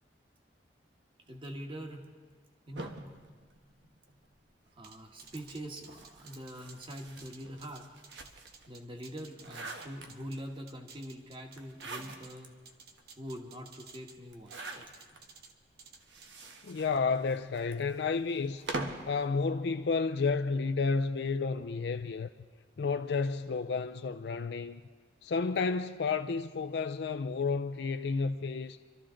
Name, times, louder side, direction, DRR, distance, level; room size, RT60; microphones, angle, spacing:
voice 1, 1.3-2.1 2.7-3.0 4.8-7.9 8.7-12.5 13.2-14.9, equal, 30° right, 1.4 m, -44 dB
sound 1, 2.8-4.4 5.2-8.7 9.1-10.5 11.5-12.5 13.0-13.1 13.3-13.4 14.3-15.2 15.9-19.2, right 2 dB, 80° right, 1.3 m, -44 dB
sound 2, 4.8-10.4 10.7-12.4 12.7-14.2 14.5-15.5 15.8-16.3, right 5 dB, 60° right, 1.1 m, -54 dB
voice 2, 16.6-18.7 19.1-22.3 22.8-24.8 25.2-28.8, left 4 dB, 65° left, 0.4 m, -31 dB
25.0 x 13.0 x 3.8 m
head